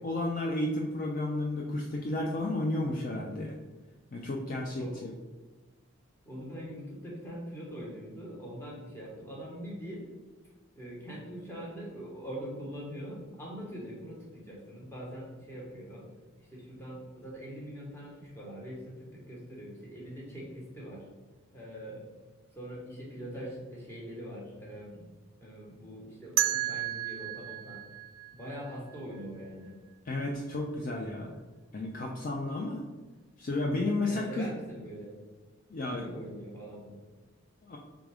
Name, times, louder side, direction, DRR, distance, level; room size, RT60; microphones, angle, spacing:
voice 1, 0.0-3.5 4.1-5.1 30.1-31.3 31.7-32.8 33.4-34.5 35.7-36.2 37.6-37.8, left 2 dB, 40° left, 0 dB, 0.4 m, -32 dB
voice 2, 4.8-5.1 6.2-10.1 10.7-16.1 16.4-21.0 21.5-22.1 22.5-25.1 25.4-27.8 28.3-29.7 34.1-35.1 36.0-37.0, equal, 10° left, -5 dB, 1.0 m, -43 dB
sound 1, 26.4-29.2, right 14 dB, 70° right, 0.3 m, -33 dB
3.6 x 3.5 x 3.4 m, 1.3 s
head